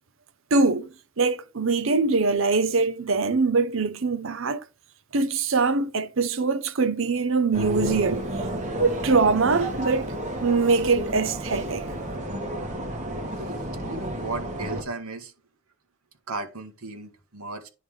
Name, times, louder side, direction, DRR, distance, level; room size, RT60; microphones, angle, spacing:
voice 1, 0.5-0.9 1.2-4.6 5.1-8.2 8.8-10.1 10.4-11.9, right 4 dB, 60° right, 0.7 m, -23 dB
sound 1, 7.5-14.8, equal, 35° right, 1.6 m, -31 dB
voice 2, 13.4-15.3 16.3-17.7, right 3 dB, 90° right, 1.7 m, -36 dB
9.9 x 3.6 x 4.9 m
head